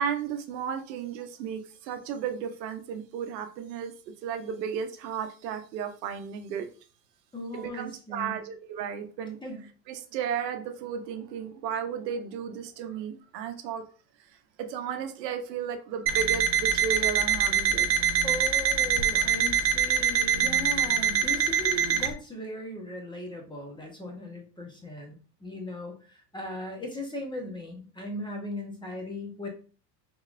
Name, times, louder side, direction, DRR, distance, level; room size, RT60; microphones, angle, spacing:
voice 1, 0.0-3.9 4.2-6.7 7.5-9.4 9.9-13.8 14.6-17.9, right 7 dB, 80° right, 7 dB, 0.8 m, -34 dB
voice 2, 7.3-8.4 9.4-9.6 18.2-29.5, left 1 dB, 10° left, 1 dB, 1.1 m, -38 dB
Alarm, 16.1-22.1, right 7 dB, 30° right, 0.3 m, -24 dB
3.8 x 2.9 x 2.5 m, 0.38 s
hypercardioid pair, 100°, 49 cm